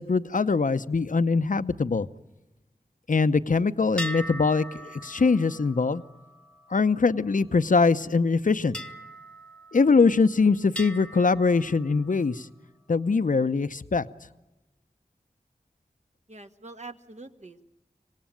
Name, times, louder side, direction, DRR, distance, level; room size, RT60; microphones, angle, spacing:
voice 1, 0.0-2.1 3.1-6.0 6.7-8.8 9.7-12.5 12.9-14.1, left 4 dB, 70° left, 12 dB, 0.8 m, -22 dB
sound 1, 4.0-7.7 8.7-10.3 10.8-12.4, equal, 5° left, 1.2 m, -41 dB
voice 2, 16.3-17.6, right 3 dB, 55° right, 6 dB, 1.7 m, -44 dB
25.5 x 18.0 x 9.0 m, 1.0 s
wide cardioid pair, 40°, 14 cm